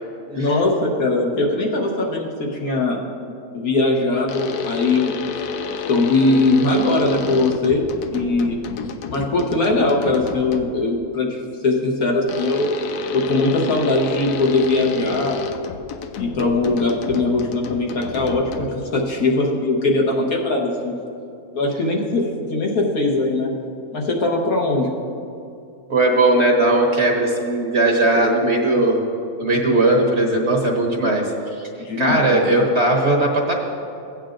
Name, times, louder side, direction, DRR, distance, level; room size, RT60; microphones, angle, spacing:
voice 1, 0.3-3.0 3.5-5.2 5.9-7.8 8.1-8.6 9.1-12.7 13.1-15.4 16.2-18.7 18.9-20.9 21.5-23.5 23.9-24.9 28.1-28.5 30.9-31.1 31.8-32.5, left 2 dB, 70° left, -1 dB, 1.6 m, -20 dB
sound 1, 4.3-10.9 12.3-18.9, left 6 dB, 85° left, 1.1 m, -30 dB
voice 2, 25.9-29.0 29.4-31.7 32.0-33.5, right 2 dB, 50° right, 0 dB, 1.1 m, -18 dB
16.0 x 8.8 x 2.5 m, 2.6 s
omnidirectional pair, 1.6 m